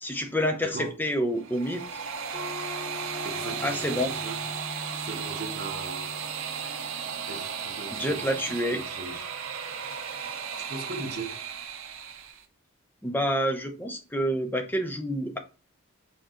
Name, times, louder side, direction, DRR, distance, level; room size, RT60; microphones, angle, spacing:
voice 1, 0.0-1.8 3.6-4.1 7.9-8.8 13.0-15.4, equal, 10° left, 0.5 m, -28 dB
voice 2, 0.6-1.0 3.2-4.4 5.0-6.4 7.3-9.3 10.6-11.4, right 3 dB, 45° right, 0.9 m, -39 dB
sound 1, 1.3-12.4, right 6 dB, 70° right, 0.6 m, -35 dB
sound 2, 2.3-7.4, left 1 dB, 15° right, 1.2 m, -42 dB
4.4 x 3.7 x 2.9 m
head